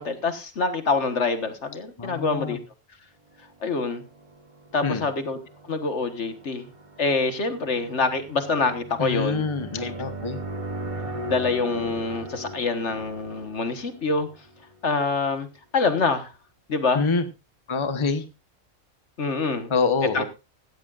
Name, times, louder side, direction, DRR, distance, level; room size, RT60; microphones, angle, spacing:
voice 1, 0.0-2.6 3.6-4.0 4.7-5.4 5.7-6.7 7.0-9.5 9.8-9.9 11.3-14.3 14.8-15.5 15.7-16.3 16.7-17.1 19.2-19.7 20.1-20.2, left 4 dB, 60° left, 9 dB, 1.7 m, -25 dB
voice 2, 2.0-2.6 4.8-5.1 9.0-10.4 16.9-17.2 17.7-18.2 19.7-20.2, left 4 dB, 25° left, 9 dB, 1.1 m, -26 dB
sound 1, 4.1-14.7, right 1 dB, 30° right, 1.1 m, -38 dB
16.5 x 14.5 x 2.5 m, 0.28 s
omnidirectional pair, 1.3 m